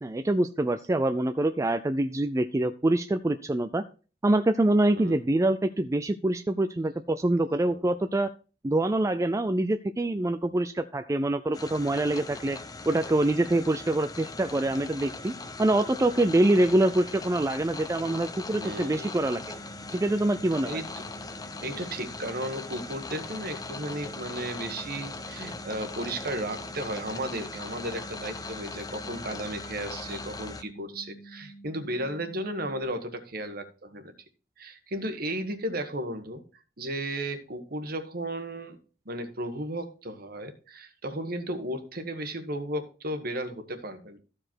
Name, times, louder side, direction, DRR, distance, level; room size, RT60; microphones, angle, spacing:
voice 1, 0.0-3.8 4.2-8.3 8.6-12.6 12.9-15.3 15.6-19.4 19.9-20.8, right 1 dB, 15° right, 9 dB, 0.4 m, -25 dB
sound 1, 11.5-30.6, left 3 dB, 20° left, 0.7 m, -40 dB
voice 2, 18.6-19.2 20.6-20.9 21.6-34.1 34.6-36.4 36.8-38.8 39.0-44.2, right 1 dB, 55° right, 8 dB, 1.4 m, -34 dB
sound 2, 19.4-32.8, right 2 dB, 75° left, 1.7 m, -49 dB
14.0 x 5.0 x 4.5 m, 0.36 s
head